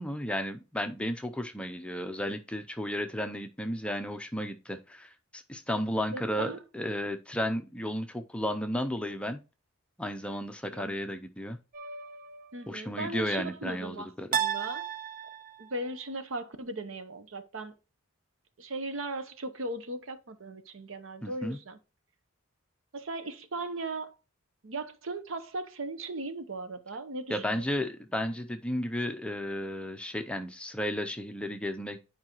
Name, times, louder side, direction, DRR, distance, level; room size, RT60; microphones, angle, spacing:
voice 1, 0.0-9.4 10.0-11.6 12.7-14.3 21.2-21.6 27.3-32.1, equal, 5° left, 0.5 m, -33 dB
voice 2, 6.1-6.6 10.7-10.9 12.5-14.9 15.6-17.7 18.6-21.8 22.9-24.1 24.6-27.6, right 2 dB, 70° right, 0.8 m, -38 dB
sound 1, 11.7-12.5 14.3-15.8, right 9 dB, 40° right, 0.5 m, -33 dB
10.0 x 4.8 x 3.0 m
head